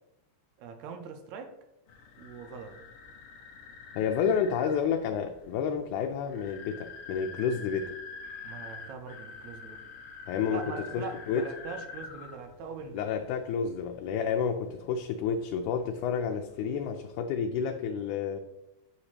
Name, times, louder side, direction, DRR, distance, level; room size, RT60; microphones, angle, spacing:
voice 1, 0.6-1.6 2.2-2.8 8.4-9.8 10.5-13.1, right 5 dB, 75° right, 6 dB, 2.0 m, -42 dB
sound 1, 1.9-17.0, left 4 dB, 65° left, 1.5 m, -47 dB
voice 2, 4.0-7.9 10.3-10.6 10.9-11.4 12.9-18.4, left 7 dB, 90° left, 4 dB, 2.1 m, -30 dB
9.1 x 6.5 x 2.9 m, 0.90 s
omnidirectional pair, 3.4 m